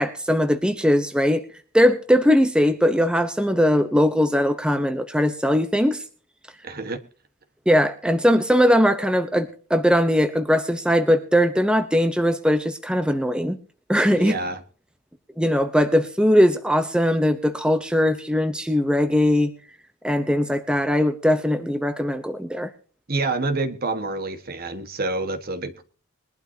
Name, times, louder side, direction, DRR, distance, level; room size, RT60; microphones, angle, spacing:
voice 1, 0.0-1.4 1.7-6.0 7.7-13.6 13.9-14.4 15.4-19.5 20.0-22.7, equal, 5° right, 0.9 m, -20 dB
voice 2, 6.6-7.0 14.1-14.6 23.1-25.8, right 3 dB, 45° right, 1.5 m, -27 dB
21.5 x 12.0 x 2.8 m
head